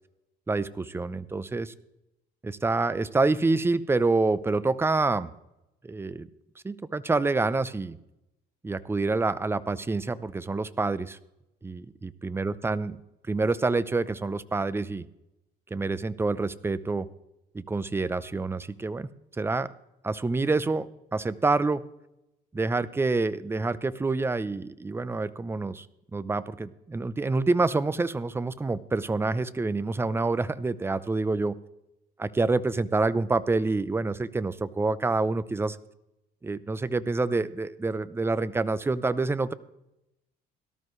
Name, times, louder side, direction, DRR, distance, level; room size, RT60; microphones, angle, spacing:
voice 1, 0.5-1.7 2.4-5.3 5.8-6.3 6.6-8.0 8.6-11.2 11.6-13.0 13.3-15.0 15.7-17.1 17.5-19.1 19.4-19.7 20.0-21.8 22.5-25.9 26.1-31.6 32.2-35.8 36.4-39.5, right 3 dB, 15° right, 15 dB, 0.6 m, -27 dB
17.5 x 13.0 x 3.2 m, 0.88 s
cardioid pair, 110°, 17 cm